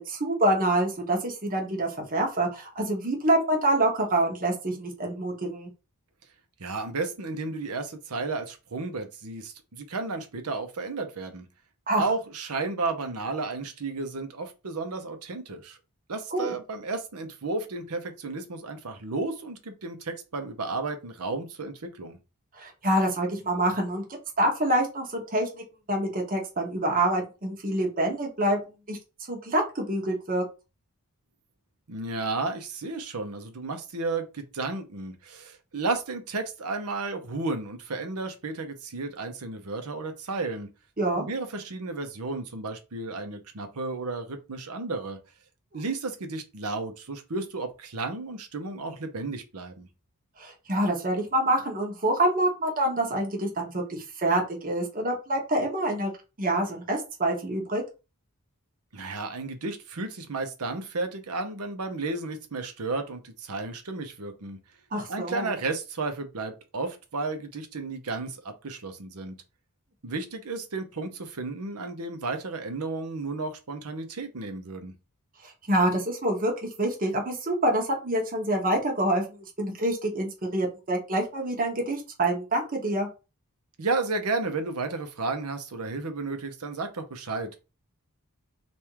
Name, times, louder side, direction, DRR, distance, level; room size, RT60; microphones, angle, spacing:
voice 1, 0.0-5.7 11.9-12.0 16.3-16.5 22.6-24.0 24.4-28.6 28.9-29.0 29.3-30.4 41.0-41.2 50.4-56.1 56.4-57.8 64.9-65.5 75.4-76.5 76.8-83.1, right 1 dB, 40° right, 0 dB, 1.1 m, -26 dB
voice 2, 6.6-11.4 12.0-15.8 16.1-22.2 31.9-40.7 41.2-45.2 45.7-49.9 58.9-64.6 65.1-69.4 70.0-74.9 83.8-87.6, right 3 dB, 90° right, 7 dB, 0.9 m, -33 dB
3.5 x 2.6 x 4.6 m, 0.30 s
head